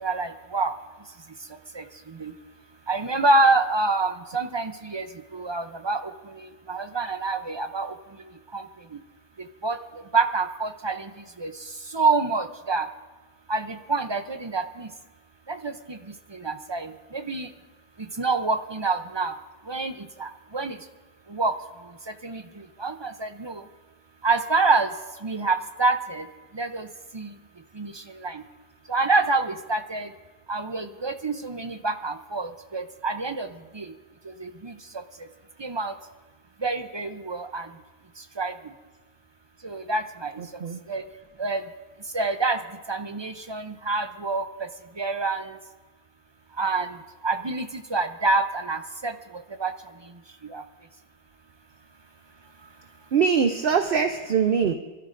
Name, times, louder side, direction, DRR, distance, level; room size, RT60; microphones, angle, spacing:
voice 1, 0.0-0.7 1.8-1.9 2.2-2.3 2.9-5.1 5.3-6.0 6.7-7.9 8.5-8.6 9.6-9.8 10.1-11.1 11.4-11.5 11.9-12.8 13.5-14.9 15.6-16.0 16.4-17.5 18.2-19.3 19.7-19.9 20.2-20.8 21.3-21.5 22.2-22.4 22.8-23.6 24.2-24.9 25.2-26.3 26.6-26.9 27.1-27.3 27.8-27.9 28.2-28.4 28.9-30.1 30.5-33.5 33.7-33.9 34.6-34.7 35.6-35.9 36.6-37.7 38.4-38.5 39.6-40.3 40.9-41.0 41.4-41.6 42.1-42.6 42.9-44.4 45.0-45.5 46.6-46.9 47.2-49.1 49.6-49.7 50.5-50.6, right 3 dB, 35° right, 8 dB, 0.4 m, -26 dB
voice 2, 40.4-40.8 53.1-54.7, right 6 dB, 60° right, 7 dB, 0.8 m, -23 dB
25.5 x 13.0 x 2.5 m, 1.3 s
omnidirectional pair, 1.2 m